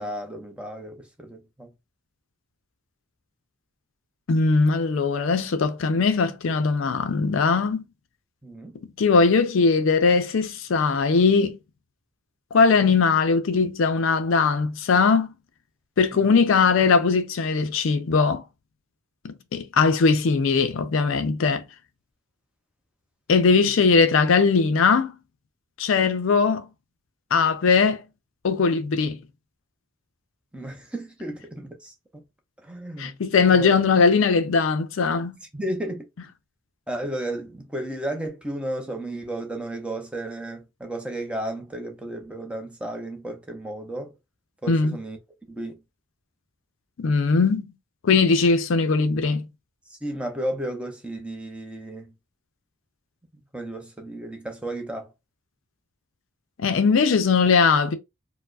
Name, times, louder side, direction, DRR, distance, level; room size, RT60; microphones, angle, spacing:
voice 1, 0.0-1.7 8.4-8.8 16.1-16.4 30.5-32.2 32.6-33.2 33.5-33.8 35.5-36.0 36.9-44.1 44.6-45.2 45.5-45.8 49.9-52.1 53.5-55.1, right 1 dB, 5° right, 0.6 m, -33 dB
voice 2, 4.3-7.8 8.8-11.6 12.5-15.3 16.0-18.4 19.2-21.6 23.3-25.1 25.8-26.7 27.3-28.0 28.4-29.2 33.0-35.4 44.7-45.0 47.0-47.7 48.0-49.4 56.6-57.9, left 4 dB, 65° left, 0.4 m, -20 dB
4.5 x 2.0 x 2.4 m
head